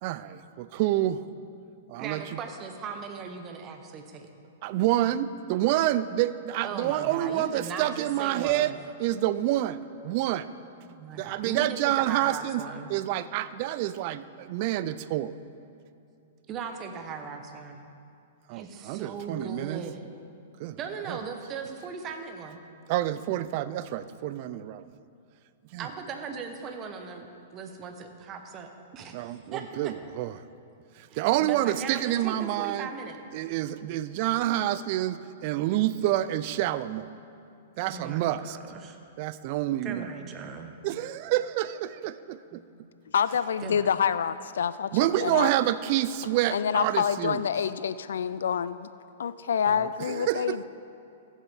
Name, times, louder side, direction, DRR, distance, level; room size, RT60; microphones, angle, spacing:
voice 1, 0.0-1.2 1.9-2.2 4.6-8.7 9.0-10.5 11.2-12.6 12.9-15.4 18.5-19.8 20.6-20.8 21.1-21.2 22.9-24.8 25.7-25.9 29.1-30.4 31.0-32.9 33.3-37.1 37.8-38.6 39.2-40.1 40.8-42.6 44.9-47.4 49.7-50.6, right 14 dB, 50° right, 15 dB, 0.4 m, -28 dB
voice 2, 2.0-4.3 6.6-8.8 10.8-12.9 16.5-17.9 18.5-20.1 20.8-22.6 25.8-27.3 27.5-29.9 31.1-33.3 37.8-39.0 39.8-40.7 42.5-42.6 43.6-43.9, right 5 dB, 30° right, 6 dB, 1.0 m, -38 dB
voice 3, 43.1-44.9 45.2-45.5 46.5-48.9 49.2-50.6, left 7 dB, 80° left, 14 dB, 0.3 m, -27 dB
15.5 x 7.3 x 3.5 m, 2.6 s
hypercardioid pair, 120°, 0 cm